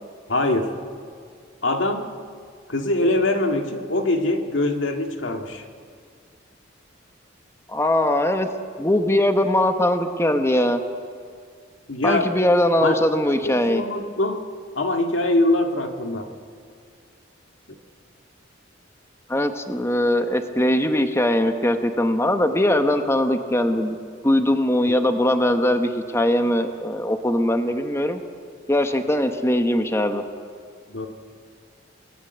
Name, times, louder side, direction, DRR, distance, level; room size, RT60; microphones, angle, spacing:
voice 1, 0.3-0.8 1.6-2.1 2.7-5.6 11.9-12.4 12.8-13.0 13.4-14.5 14.8-16.3 24.9-25.0 30.9-31.1, left 2 dB, 85° left, 4 dB, 2.1 m, -23 dB
voice 2, 7.7-8.5 8.8-10.8 12.0-13.8 19.3-23.9 24.2-28.2 28.7-30.2, left 1 dB, 15° left, 7 dB, 1.2 m, -21 dB
28.5 x 19.5 x 8.1 m, 2.1 s
head